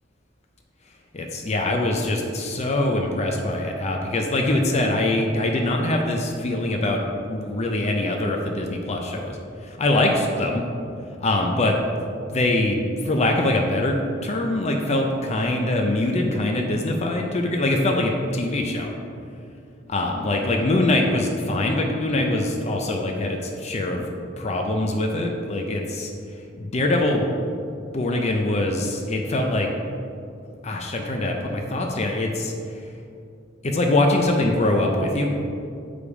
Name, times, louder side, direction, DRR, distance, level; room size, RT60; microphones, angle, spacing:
voice 1, 1.1-9.4 9.6-10.6 11.2-14.0 14.2-18.9 19.9-26.1 26.6-27.3 27.9-29.7 30.6-32.5 33.6-35.3, left 1 dB, 35° left, 2 dB, 0.6 m, -23 dB
7.0 x 5.1 x 4.8 m, 2.5 s
head